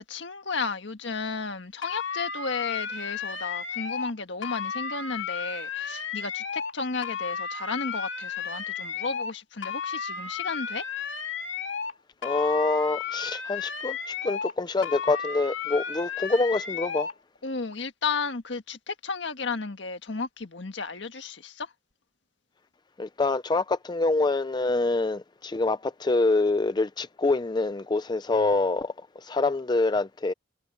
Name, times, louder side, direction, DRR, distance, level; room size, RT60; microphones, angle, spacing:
voice 1, 0.0-10.8 17.4-21.7, left 4 dB, 70° left, 1.6 m, -33 dB
sound 1, 1.8-4.1 4.4-6.7 7.0-9.3 9.6-11.9 12.2-14.5 14.8-17.1, left 6 dB, 90° left, 2.5 m, -33 dB
voice 2, 12.2-17.1 23.0-28.9 29.2-30.3, left 3 dB, 25° left, 0.4 m, -26 dB
head